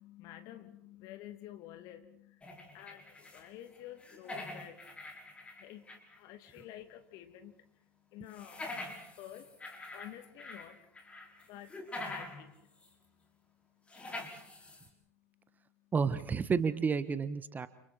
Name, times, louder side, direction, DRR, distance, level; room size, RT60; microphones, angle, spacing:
voice 1, 0.0-15.9, left 12 dB, 50° left, 8 dB, 2.6 m, -52 dB
sound 1, 2.4-3.5 3.8-6.2 6.5-6.6 8.3-10.7 11.0-12.4 12.8-12.9 13.9-14.9, left 2 dB, 15° left, 5.3 m, -45 dB
voice 2, 15.9-17.7, right 5 dB, 20° right, 14 dB, 1.3 m, -30 dB
29.5 x 29.5 x 4.4 m, 0.66 s
figure-of-eight pair, 80°, 8 cm